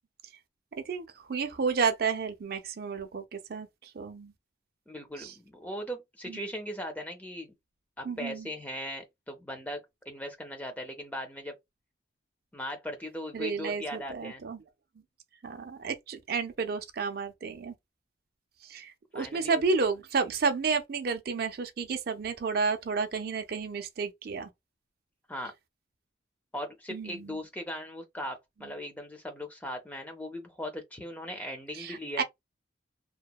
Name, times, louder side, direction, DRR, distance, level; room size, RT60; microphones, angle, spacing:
voice 1, 0.8-4.3 5.2-5.3 6.3-6.4 8.0-8.5 13.3-14.6 15.4-17.7 18.6-24.5 26.9-27.4 28.6-28.7 31.7-32.2, right 5 dB, 55° right, 0.4 m, -31 dB
voice 2, 4.9-7.5 8.0-11.5 12.5-14.4 19.1-19.6 25.3-25.5 26.5-32.2, equal, 10° left, 0.5 m, -39 dB
2.8 x 2.1 x 2.2 m
head